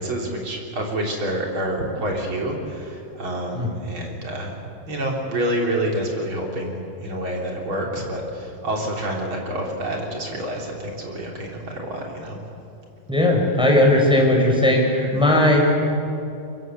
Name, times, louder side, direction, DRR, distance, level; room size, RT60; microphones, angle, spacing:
voice 1, 0.0-12.4, right 1 dB, 35° right, 0 dB, 4.0 m, -28 dB
voice 2, 13.1-15.6, left 1 dB, ahead, -1 dB, 4.4 m, -17 dB
23.5 x 22.5 x 8.0 m, 2.7 s
omnidirectional pair, 4.0 m